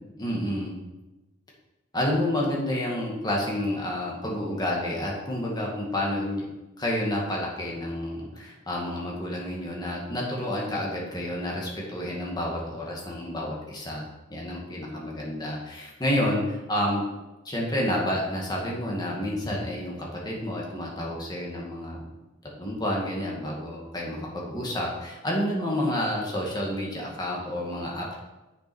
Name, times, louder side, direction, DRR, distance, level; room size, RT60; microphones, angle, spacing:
voice 1, 0.2-0.8 1.9-6.4 6.8-14.0 14.3-17.1 17.5-22.1 22.6-28.2, left 1 dB, 20° left, -3 dB, 2.0 m, -29 dB
8.1 x 6.6 x 4.6 m, 1.1 s
head